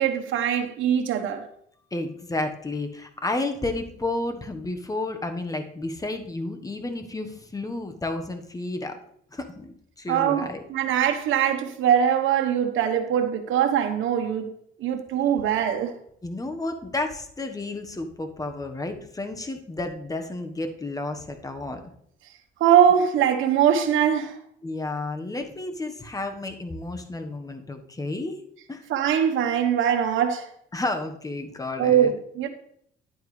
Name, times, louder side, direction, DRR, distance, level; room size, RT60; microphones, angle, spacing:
voice 1, 0.0-1.4 10.1-14.5 14.8-15.9 22.6-24.4 28.9-30.5 31.8-32.5, right 9 dB, 80° right, 1.2 m, -22 dB
voice 2, 1.9-9.0 9.3-10.6 16.2-21.8 24.6-28.4 28.7-28.8 30.7-32.1, left 2 dB, 15° left, 1.3 m, -31 dB
10.5 x 9.2 x 3.3 m
cardioid pair, 90°, 20 cm